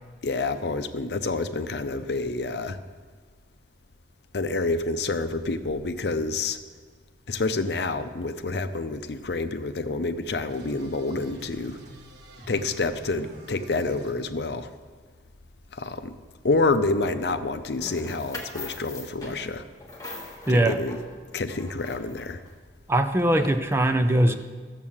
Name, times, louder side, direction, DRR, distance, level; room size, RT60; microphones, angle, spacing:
voice 1, 0.2-2.8 4.3-6.6 7.3-11.8 12.5-14.7 15.7-16.1 16.4-19.6 20.5-21.0 21.3-22.4 23.4-23.5, left 3 dB, 65° left, 10 dB, 0.6 m, -28 dB
sound 1, 10.5-14.1, right 1 dB, 65° right, 1.6 m, -47 dB
sound 2, 17.8-22.5, left 2 dB, 20° left, 1.6 m, -41 dB
voice 2, 20.5-20.8 22.9-24.3, right 1 dB, 15° right, 8 dB, 0.5 m, -21 dB
13.0 x 7.5 x 7.2 m, 1.5 s
head